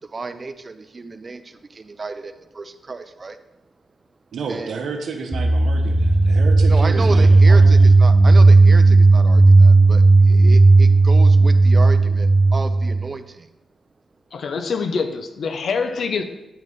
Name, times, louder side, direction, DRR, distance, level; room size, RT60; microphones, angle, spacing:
voice 1, 0.1-3.4 4.5-4.7 6.7-13.5, right 3 dB, 40° right, 10 dB, 0.5 m, -32 dB
voice 2, 4.3-7.9, right 5 dB, 75° right, 4 dB, 1.0 m, -31 dB
sound 1, 5.3-13.1, right 3 dB, ahead, 0.8 m, -13 dB
voice 3, 14.3-16.2, left 5 dB, 70° left, 8 dB, 0.6 m, -25 dB
9.1 x 3.2 x 5.4 m, 0.98 s
cardioid pair, 70°, 0 cm